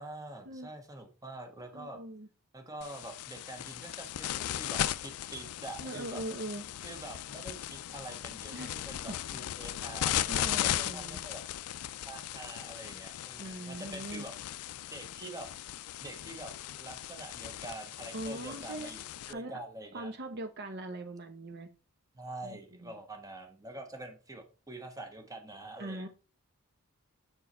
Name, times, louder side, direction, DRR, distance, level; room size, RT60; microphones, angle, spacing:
voice 1, 0.0-2.0 2.5-6.2 6.8-11.4 12.0-14.3 14.9-15.5 16.0-16.5 16.8-20.1 22.1-26.1, right 2 dB, 15° right, 5 dB, 1.4 m, -45 dB
voice 2, 1.7-2.3 5.8-6.6 8.5-8.7 9.1-9.2 10.3-11.2 13.4-14.3 18.1-18.9 19.3-19.6 19.9-21.7 22.4-23.0 25.8-26.1, right 1 dB, 50° right, 6 dB, 0.8 m, -41 dB
sound 1, 2.8-19.3, left 12 dB, 80° left, 0.4 m, -37 dB
7.9 x 4.6 x 4.2 m, 0.34 s
head